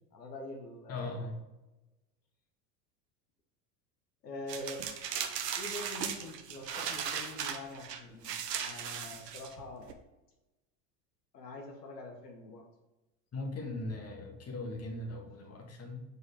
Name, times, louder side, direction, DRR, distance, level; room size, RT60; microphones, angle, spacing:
voice 1, 0.1-1.1 4.2-4.9 5.5-9.9 11.3-12.7, left 2 dB, 85° left, 2 dB, 1.1 m, -45 dB
voice 2, 0.9-1.4 13.3-16.0, left 2 dB, 30° left, 2 dB, 1.6 m, -39 dB
sound 1, 4.5-9.9, right 8 dB, 80° right, 0.8 m, -37 dB
4.8 x 4.8 x 4.8 m, 1.0 s
hypercardioid pair, 80°, 48 cm